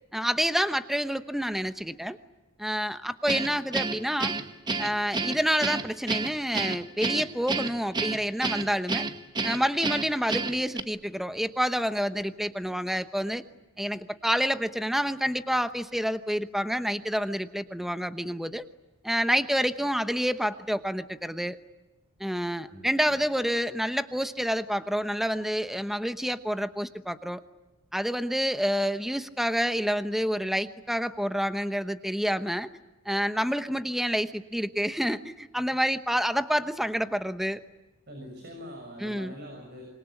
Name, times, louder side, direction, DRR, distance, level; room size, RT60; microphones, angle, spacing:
voice 1, 0.1-2.2 2.6-4.3 4.8-9.1 9.4-13.4 13.8-18.7 19.0-21.6 22.2-27.4 27.9-32.7 33.1-37.6 39.0-39.3, equal, ahead, 10 dB, 0.9 m, -28 dB
Guitar, 3.3-10.8, right 3 dB, 20° right, 1.2 m, -30 dB
voice 2, 22.6-23.3 38.1-39.8, equal, 50° right, 2 dB, 6.5 m, -44 dB
27.0 x 22.0 x 9.9 m, 1.1 s
head